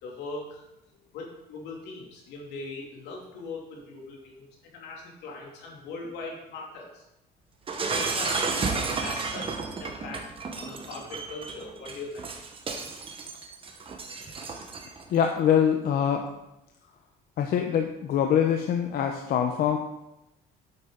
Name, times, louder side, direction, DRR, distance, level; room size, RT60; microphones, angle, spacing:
voice 1, 0.0-0.6 1.1-7.0 7.9-9.5 9.8-10.2 10.6-12.2, left 3 dB, 85° left, -1 dB, 2.8 m, -40 dB
Shatter, 7.7-15.0, right 4 dB, 30° right, 1.2 m, -32 dB
voice 2, 15.1-16.3 17.4-19.8, left 8 dB, 65° left, 4 dB, 0.8 m, -24 dB
8.6 x 7.9 x 3.9 m, 0.89 s
cardioid pair, 110°, 17 cm